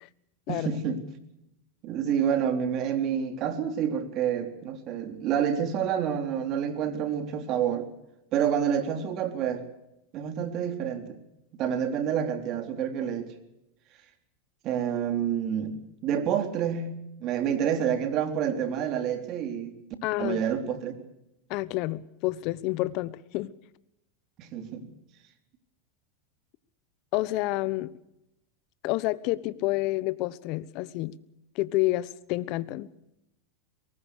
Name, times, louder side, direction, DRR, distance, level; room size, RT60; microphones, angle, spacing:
voice 1, 0.5-1.0 1.8-7.9 8.3-9.6 10.1-11.2 11.6-13.3 14.6-16.9 17.2-19.8 20.2-20.9 24.4-24.9, right 8 dB, 45° right, 7 dB, 3.7 m, -28 dB
voice 2, 20.0-20.4 21.5-23.5 27.1-27.9 28.8-31.1 31.5-32.9, left 18 dB, 55° left, 17 dB, 1.2 m, -29 dB
23.5 x 20.0 x 6.5 m, 0.85 s
hypercardioid pair, 105°, 0 cm